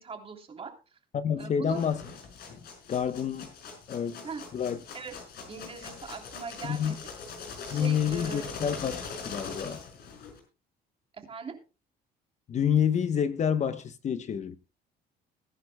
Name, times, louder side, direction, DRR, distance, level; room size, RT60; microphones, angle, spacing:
voice 1, 0.0-1.0 1.4-1.8 4.2-4.4 4.9-5.1 5.5-7.0 7.7-8.6 11.3-11.6, right 5 dB, 35° right, 3.2 m, -41 dB
voice 2, 1.1-2.0 2.9-3.5 3.9-4.3 4.5-4.8 6.6-7.0 7.7-9.8 12.5-14.6, left 8 dB, 45° left, 0.9 m, -28 dB
sound 1, 1.7-10.4, left 5 dB, 65° left, 5.6 m, -42 dB
22.0 x 10.5 x 2.2 m
cardioid pair, 110°, 17 cm